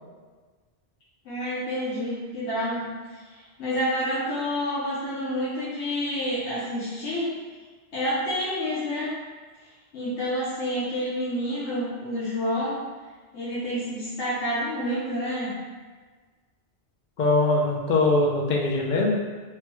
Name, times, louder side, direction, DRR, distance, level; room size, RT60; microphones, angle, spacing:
voice 1, 1.2-2.9 3.6-7.3 7.9-9.1 9.9-12.8 13.3-15.5, equal, 85° left, -9 dB, 1.0 m, -28 dB
voice 2, 17.2-19.2, left 2 dB, 55° left, -1 dB, 0.6 m, -22 dB
3.2 x 2.2 x 3.0 m, 1.4 s
omnidirectional pair, 1.1 m